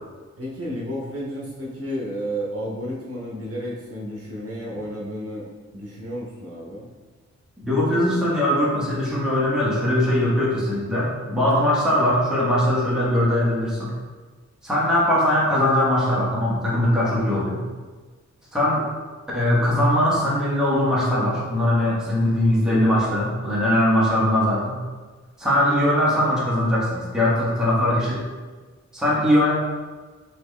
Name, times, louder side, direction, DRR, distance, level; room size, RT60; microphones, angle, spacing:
voice 1, 0.4-5.5 5.7-6.9, equal, 50° right, -6 dB, 1.0 m, -32 dB
voice 2, 7.6-13.9 14.6-17.6 18.5-18.9 19.3-24.8 25.4-28.2 28.9-29.5, left 1 dB, ahead, -8 dB, 1.2 m, -21 dB
4.2 x 3.0 x 3.2 m, 1.4 s
wide cardioid pair, 130°, 29 cm